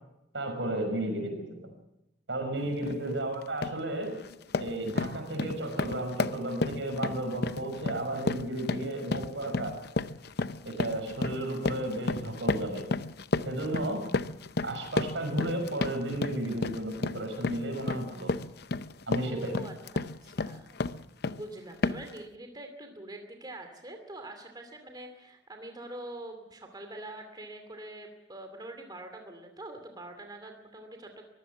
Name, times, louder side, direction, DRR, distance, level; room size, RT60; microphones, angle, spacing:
voice 1, 0.3-1.7 2.3-4.2 4.6-9.8 10.6-12.9 13.4-14.0 14.6-18.3 19.1-19.5, right 1 dB, 85° right, 5 dB, 6.2 m, -33 dB
sound 1, 2.8-3.0 3.4-3.8 4.2-21.5 21.8-22.2, left 3 dB, 60° left, 0.7 m, -33 dB
voice 2, 19.2-20.7 21.3-31.2, right 1 dB, 25° right, 5 dB, 2.6 m, -44 dB
23.5 x 15.5 x 7.2 m, 0.87 s
head